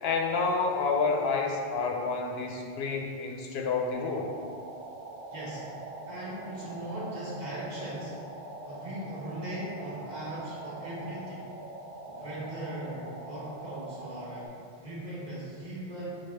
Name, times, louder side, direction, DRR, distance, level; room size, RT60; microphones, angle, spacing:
voice 1, 0.0-4.3, left 4 dB, 80° left, 1 dB, 0.8 m, -29 dB
sound 1, 3.9-14.5, right 2 dB, 90° right, 1.0 m, -43 dB
voice 2, 5.3-5.8 6.0-8.2 8.6-11.4 12.1-14.5 14.8-16.3, right 1 dB, 45° right, -8 dB, 1.2 m, -39 dB
5.9 x 2.3 x 3.4 m, 2.3 s
omnidirectional pair, 1.1 m